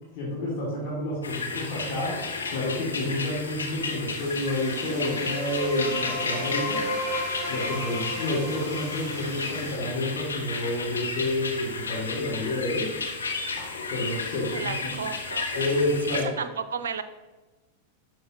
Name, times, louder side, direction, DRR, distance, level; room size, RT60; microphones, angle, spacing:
voice 1, 0.1-2.2 2.5-6.9 7.5-12.9 13.6-14.9 15.5-16.3, left 1 dB, 45° left, -6 dB, 2.8 m, -29 dB
sound 1, 1.2-16.2, left 4 dB, 75° left, 1.1 m, -33 dB
sound 2, 4.1-9.8, right 6 dB, 35° right, 0.9 m, -46 dB
sound 3, 4.3-10.0, left 1 dB, 30° left, 2.4 m, -34 dB
voice 2, 14.5-15.7 16.1-17.0, right 6 dB, 65° right, 12 dB, 0.6 m, -33 dB
12.0 x 6.4 x 3.1 m, 1.2 s
figure-of-eight pair, 90°, 0 cm